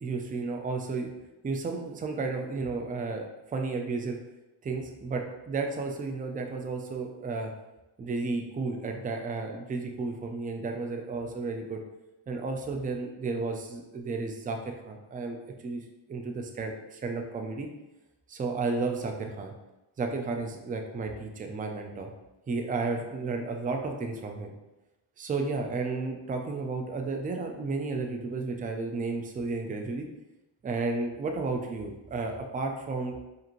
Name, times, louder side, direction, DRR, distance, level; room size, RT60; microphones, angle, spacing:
voice 1, 0.0-1.1 1.4-4.2 4.6-7.5 8.0-11.8 12.3-15.4 15.6-17.7 18.3-19.5 20.0-22.1 22.5-24.5 25.2-30.1 30.6-33.2, right 3 dB, 20° right, 3 dB, 0.4 m, -33 dB
5.0 x 2.6 x 3.0 m, 1.0 s
cardioid pair, 115°, 47 cm